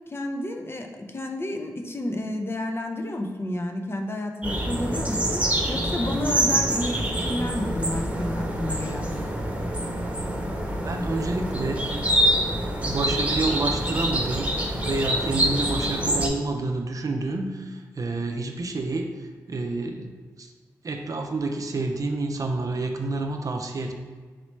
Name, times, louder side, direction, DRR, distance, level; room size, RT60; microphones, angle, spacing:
voice 1, 0.1-9.1, left 1 dB, 35° left, 3 dB, 0.5 m, -31 dB
sound 1, 4.4-16.3, right 1 dB, 20° right, 1.1 m, -26 dB
voice 2, 10.7-11.9 12.8-14.5 14.8-20.1 20.4-20.5 20.8-23.9, right 2 dB, 50° right, 4 dB, 0.5 m, -29 dB
4.1 x 3.0 x 3.2 m, 1.5 s
supercardioid pair, 45°, 7 cm